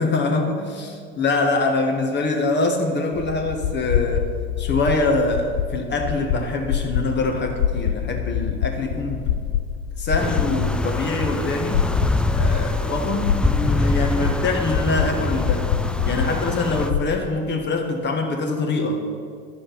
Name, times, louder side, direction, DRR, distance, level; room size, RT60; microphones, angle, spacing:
voice 1, 0.0-4.3 4.6-9.4 10.0-11.9 12.3-15.7 16.0-19.1, left 3 dB, 35° left, 3 dB, 1.6 m, -24 dB
sound 1, 3.1-17.2, left 9 dB, 75° left, 0.6 m, -26 dB
sound 2, 10.2-16.9, left 2 dB, 5° left, 0.4 m, -25 dB
11.5 x 5.0 x 5.8 m, 2.2 s
supercardioid pair, 90°, 30 cm